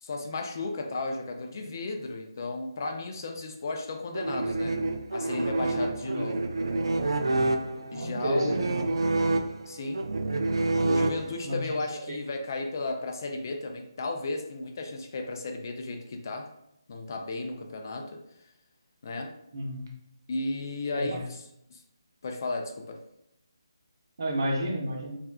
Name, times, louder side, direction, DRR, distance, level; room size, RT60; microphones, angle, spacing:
voice 1, 0.0-4.8 5.1-6.4 7.9-8.6 9.7-10.0 10.8-16.5 16.9-18.5 19.0-19.3 20.3-21.4 21.7-21.8 22.2-23.0, left 2 dB, 45° left, 3 dB, 0.4 m, -34 dB
sound 1, 4.1-11.6, right 2 dB, 75° right, 0.3 m, -28 dB
voice 2, 7.9-8.8 11.4-11.8 19.5-19.9 20.9-21.2 24.2-25.2, right 1 dB, 55° right, 0 dB, 0.7 m, -31 dB
3.3 x 2.4 x 2.3 m, 0.80 s
figure-of-eight pair, 160°, 3 cm